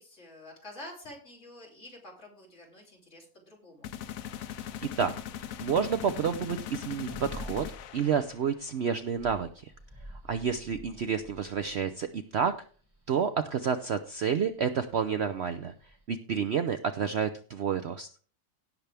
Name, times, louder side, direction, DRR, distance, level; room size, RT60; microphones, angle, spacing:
voice 1, 0.0-3.9 10.4-10.7, left 1 dB, 50° left, -2 dB, 3.7 m, -48 dB
sound 1, 3.8-8.6, left 10 dB, 70° left, 1.0 m, -40 dB
sound 2, 5.4-16.0, equal, 15° right, 1.9 m, -49 dB
voice 2, 5.6-7.6 7.9-9.7 10.3-12.5 13.1-15.7 16.1-18.1, right 7 dB, 60° right, 10 dB, 0.7 m, -29 dB
17.0 x 6.8 x 3.4 m, 0.42 s
omnidirectional pair, 1.6 m